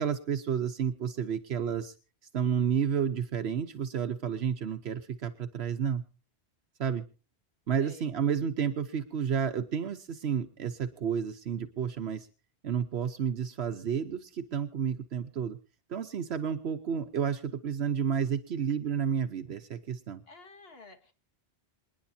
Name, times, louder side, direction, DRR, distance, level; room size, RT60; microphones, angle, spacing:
voice 1, 0.0-1.9 2.3-6.0 6.8-7.0 7.7-12.3 12.6-15.6 15.9-20.2, right 7 dB, 75° right, 8 dB, 1.1 m, -31 dB
voice 2, 20.3-21.1, left 2 dB, 70° left, 5 dB, 2.1 m, -51 dB
27.5 x 10.5 x 2.8 m, 0.35 s
omnidirectional pair, 1.1 m